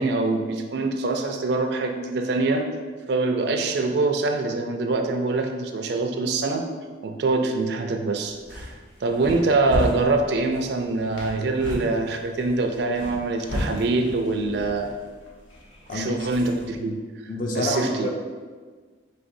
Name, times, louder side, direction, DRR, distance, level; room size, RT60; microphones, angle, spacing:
voice 1, 0.0-2.7 3.1-6.6 7.0-8.7 9.0-14.9 15.9-17.0 17.5-18.1, right 3 dB, 60° right, 4 dB, 0.4 m, -24 dB
sound 1, 8.2-16.8, left 1 dB, 80° left, 1.0 m, -35 dB
voice 2, 17.3-18.1, left 2 dB, 45° left, 1 dB, 0.5 m, -27 dB
4.9 x 3.2 x 2.6 m, 1.5 s
head